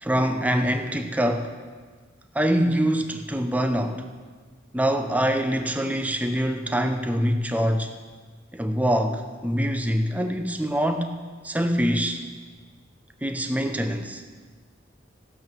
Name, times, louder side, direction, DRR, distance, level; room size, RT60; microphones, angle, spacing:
voice 1, 0.0-1.5 2.3-4.1 4.7-7.9 8.5-11.2 11.4-12.2 13.2-14.2, equal, 10° right, 6 dB, 0.6 m, -24 dB
15.0 x 7.8 x 6.1 m, 1.5 s
head